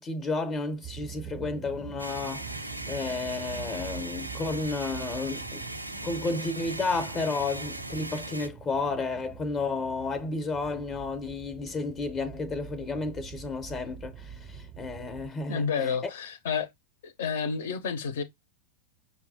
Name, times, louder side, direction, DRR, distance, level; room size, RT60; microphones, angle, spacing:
voice 1, 0.0-5.7 6.0-15.9, left 3 dB, 25° left, 0.7 m, -32 dB
sound 1, 0.8-15.3, right 10 dB, 25° right, 0.5 m, -45 dB
sound 2, 2.0-8.5, right 1 dB, 85° right, 0.4 m, -38 dB
voice 2, 15.5-16.7 17.0-18.2, left 6 dB, 60° left, 0.7 m, -30 dB
5.7 x 2.3 x 2.7 m
figure-of-eight pair, 90°, 0 cm